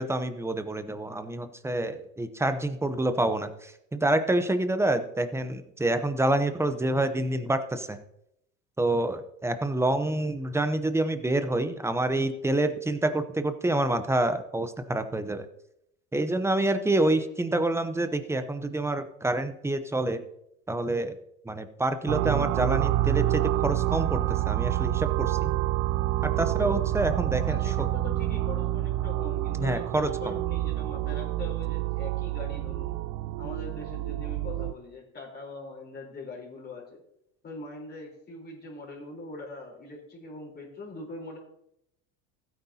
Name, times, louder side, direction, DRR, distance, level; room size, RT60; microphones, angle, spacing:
voice 1, 0.0-8.0 8.8-15.5 16.1-20.2 20.7-21.2 21.4-25.5 26.2-27.9 29.6-30.3, right 1 dB, 10° right, 9 dB, 0.8 m, -27 dB
sound 1, 22.1-34.7, right 15 dB, 55° right, 0.5 m, -28 dB
voice 2, 27.4-33.0 33.4-37.0 37.4-41.4, left 2 dB, 30° left, -1 dB, 4.0 m, -42 dB
15.5 x 9.1 x 2.8 m, 0.79 s
supercardioid pair, 115°, 32 cm